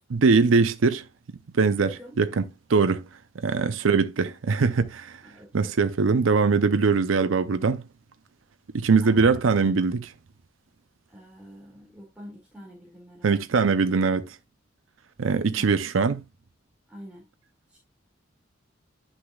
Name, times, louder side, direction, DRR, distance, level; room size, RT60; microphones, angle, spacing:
voice 1, 0.1-1.0 1.6-2.4 2.7-3.0 3.4-5.2 5.5-7.8 8.7-10.1 13.2-14.4 15.2-16.2, right 4 dB, 85° right, 0.6 m, -22 dB
voice 2, 1.8-2.2 3.6-3.7 5.2-5.7 9.0-10.0 11.1-13.4 15.5-15.9 16.9-17.2 17.7-17.8, equal, 5° right, 2.2 m, -45 dB
9.8 x 6.3 x 2.3 m
head